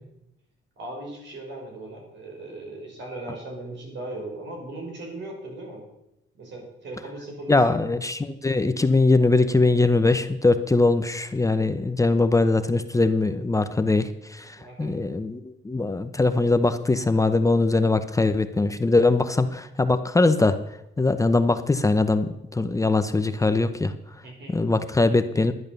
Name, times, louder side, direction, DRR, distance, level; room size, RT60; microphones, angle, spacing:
voice 1, 0.8-5.8 6.3-7.8 14.6-14.9 24.2-24.5, right 2 dB, 65° right, 0 dB, 5.9 m, -38 dB
voice 2, 7.5-15.4 15.6-20.6 21.0-23.9 24.5-25.5, left 3 dB, 15° left, 10 dB, 0.8 m, -21 dB
11.0 x 10.5 x 6.7 m, 0.86 s
cardioid pair, 90°, 20 cm